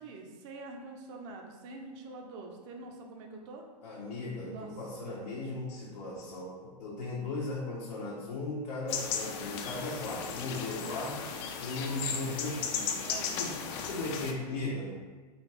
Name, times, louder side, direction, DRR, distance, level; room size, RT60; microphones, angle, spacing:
voice 1, 0.0-3.7 4.4-4.7 13.0-13.4, right 3 dB, 45° right, 2 dB, 0.7 m, -45 dB
voice 2, 3.8-11.3 11.6-13.1 13.3-13.6 13.9-14.9, left 2 dB, 75° left, -7 dB, 1.0 m, -37 dB
sound 1, 8.9-14.3, left 6 dB, 40° left, 0.4 m, -36 dB
4.0 x 2.8 x 3.2 m, 1.3 s
hypercardioid pair, 120°, 21 cm